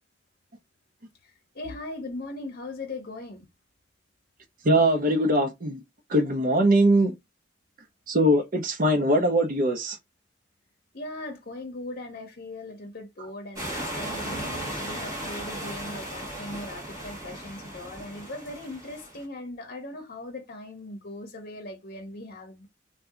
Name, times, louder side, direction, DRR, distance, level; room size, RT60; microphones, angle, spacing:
voice 1, 1.2-3.5 10.9-22.7, left 2 dB, 55° left, 0.7 m, -39 dB
voice 2, 4.6-5.8 6.1-7.1 8.1-10.0, right 1 dB, 50° right, 0.7 m, -21 dB
sound 1, 13.6-19.2, right 1 dB, 20° right, 1.2 m, -36 dB
2.7 x 2.2 x 3.6 m
head